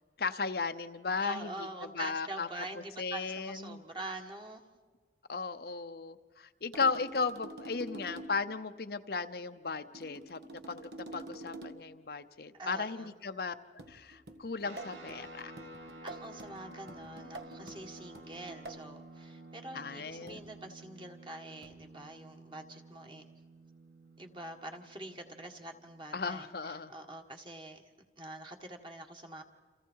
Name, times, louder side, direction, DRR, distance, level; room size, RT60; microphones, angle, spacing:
voice 1, 0.2-1.7 1.9-2.5 2.8-3.8 5.3-13.5 13.9-15.5 19.7-20.4 26.1-26.9, left 4 dB, 55° left, 9 dB, 0.7 m, -36 dB
voice 2, 1.2-4.6 12.5-13.1 16.0-23.3 24.2-27.8 28.2-29.4, right 2 dB, 25° right, 4 dB, 1.8 m, -45 dB
sound 1, 6.7-8.5 9.9-12.0 13.8-18.9 20.3-20.6 21.6-21.9, right 2 dB, 65° right, 1.6 m, -47 dB
sound 2, 14.6-26.4, right 1 dB, 85° right, 3.1 m, -52 dB
29.5 x 28.0 x 4.7 m, 1.5 s
head